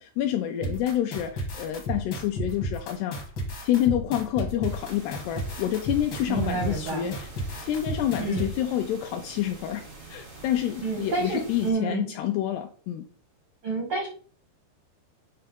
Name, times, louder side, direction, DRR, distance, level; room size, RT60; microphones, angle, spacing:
voice 1, 0.0-3.2 3.6-7.3 7.6-13.1, left 11 dB, 80° left, 5 dB, 2.5 m, -28 dB
sound 1, 0.6-8.5, right 1 dB, 60° left, 1.2 m, -32 dB
sound 2, 4.6-11.7, right 3 dB, 70° right, 0.5 m, -45 dB
voice 2, 6.3-7.1 8.2-8.5 10.8-12.1 13.6-14.1, right 3 dB, 90° right, -1 dB, 1.1 m, -29 dB
9.0 x 3.4 x 5.3 m, 0.42 s
omnidirectional pair, 5.1 m